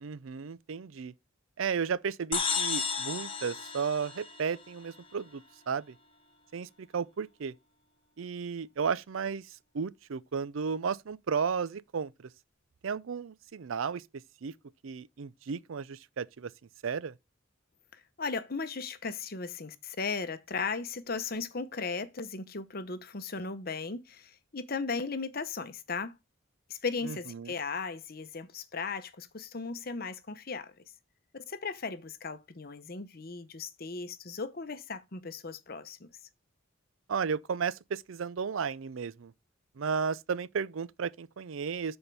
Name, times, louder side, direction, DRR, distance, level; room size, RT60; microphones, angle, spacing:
voice 1, 0.0-1.1 1.6-5.9 6.5-7.5 8.2-9.5 9.7-12.1 12.8-14.0 14.4-14.5 14.8-16.5 16.8-17.1 27.0-27.5 37.1-39.3 39.8-42.0, right 6 dB, 75° right, 0.5 m, -34 dB
sound 1, 2.3-4.9, left 6 dB, 25° left, 1.3 m, -33 dB
voice 2, 17.9-26.2 26.7-30.7 31.5-36.1, left 4 dB, 45° left, 0.8 m, -37 dB
12.0 x 4.4 x 3.3 m
head